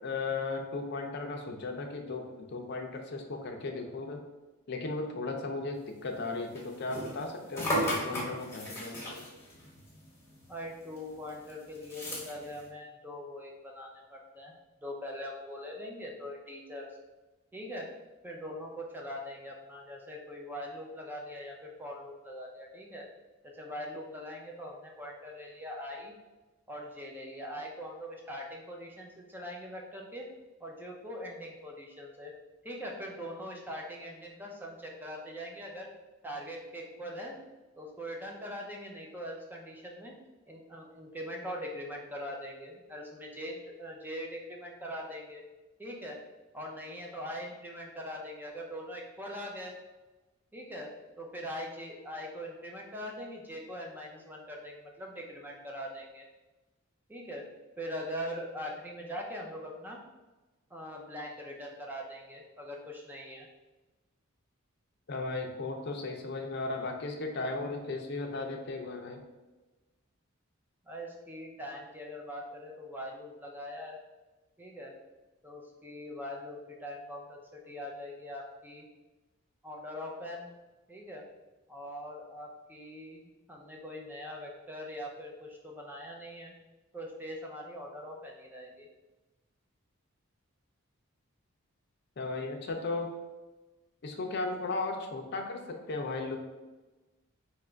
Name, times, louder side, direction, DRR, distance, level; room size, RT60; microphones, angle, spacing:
voice 1, 0.0-4.2 4.7-9.2 65.1-69.2 92.2-93.1 94.0-96.4, left 3 dB, 50° left, 3 dB, 0.5 m, -36 dB
sound 1, 6.1-10.7 11.0-12.6, equal, 10° left, 0.9 m, -36 dB
voice 2, 10.5-14.5 14.8-16.9 17.5-17.9 18.2-23.1 23.4-26.1 26.7-30.3 30.6-32.3 32.6-35.9 36.2-37.4 37.8-40.2 40.5-45.4 45.8-46.2 46.5-49.8 50.5-50.9 51.2-56.2 57.1-57.5 57.8-60.0 60.7-63.5 70.9-74.0 74.6-74.9 75.4-78.8 79.6-80.5 80.9-81.2 81.7-86.5 86.9-88.9, equal, 10° right, 0 dB, 0.4 m, -42 dB
2.9 x 2.4 x 4.3 m, 1.2 s
head